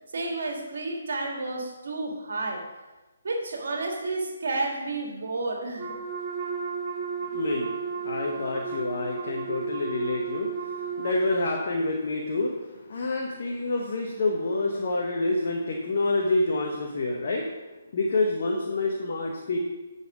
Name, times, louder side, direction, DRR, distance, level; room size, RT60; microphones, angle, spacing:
voice 1, 0.1-2.7 3.2-6.0, right 2 dB, 60° right, 1 dB, 1.7 m, -31 dB
Wind instrument woodwind instrument, 5.8-11.5, right 5 dB, 35° right, 1.4 m, -33 dB
voice 2, 7.3-17.6 17.9-19.6, left 2 dB, 50° left, 0 dB, 1.0 m, -28 dB
10.5 x 4.2 x 4.9 m, 1.1 s
figure-of-eight pair, 140°, 0 cm